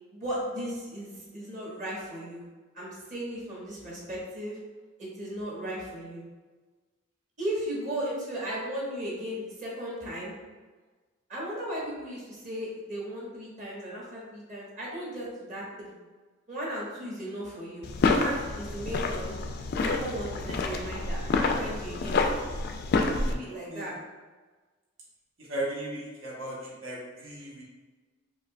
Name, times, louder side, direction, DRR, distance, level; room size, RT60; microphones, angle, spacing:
voice 1, 0.1-2.5 2.7-4.6 5.0-6.2 7.4-10.3 11.3-15.9 16.5-19.3 19.9-22.2 23.2-24.0, equal, 40° right, -6 dB, 1.2 m, -36 dB
sound 1, 17.8-23.3, left 3 dB, 50° left, 0.3 m, -28 dB
voice 2, 25.4-27.6, right 1 dB, 85° right, -4 dB, 1.1 m, -36 dB
4.9 x 2.7 x 2.2 m, 1.3 s
head